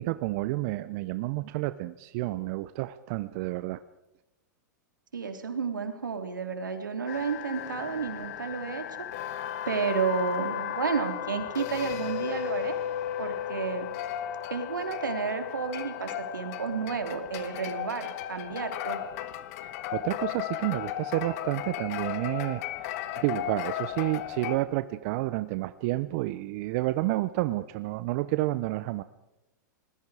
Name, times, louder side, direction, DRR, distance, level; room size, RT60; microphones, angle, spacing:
voice 1, 0.0-3.8 19.6-29.0, right 18 dB, 50° right, 13 dB, 0.8 m, -30 dB
voice 2, 5.1-8.8 9.7-12.8 13.2-13.9 14.5-19.0, right 5 dB, 90° right, 6 dB, 3.0 m, -31 dB
sound 1, 7.1-24.6, left 12 dB, 55° left, 1.5 m, -35 dB
26.0 x 20.5 x 4.9 m, 0.94 s
hypercardioid pair, 110°, 10 cm